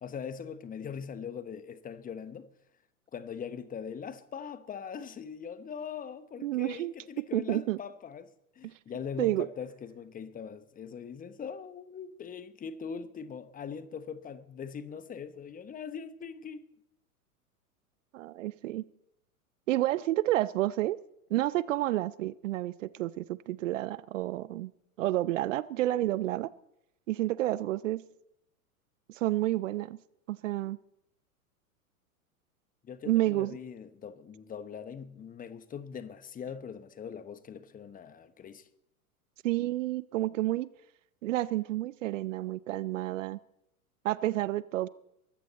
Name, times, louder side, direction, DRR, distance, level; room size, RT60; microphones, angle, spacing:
voice 1, 0.0-2.5 3.1-16.6 32.8-38.7, left 7 dB, 20° left, 1.0 m, -41 dB
voice 2, 6.4-6.9 7.3-7.8 9.2-9.5 18.1-18.8 19.7-21.0 21.3-24.7 25.0-26.5 27.1-28.0 29.1-30.0 30.3-30.8 33.1-33.5 39.4-40.7 41.2-43.4 44.0-44.9, right 15 dB, 55° right, 0.7 m, -30 dB
22.5 x 14.5 x 4.1 m
figure-of-eight pair, 95°, 44 cm